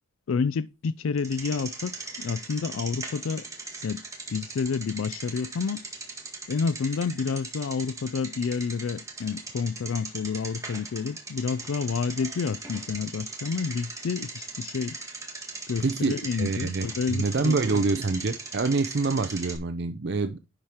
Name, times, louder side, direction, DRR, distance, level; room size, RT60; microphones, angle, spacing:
voice 1, 0.3-3.5 3.8-4.0 4.3-5.8 6.5-15.0 15.7-17.6, left 5 dB, 75° left, 0.4 m, -29 dB
Bicycle, 1.2-19.6, right 3 dB, 15° right, 1.7 m, -39 dB
voice 2, 15.8-20.4, right 3 dB, 55° right, 0.6 m, -26 dB
11.0 x 4.9 x 4.4 m
head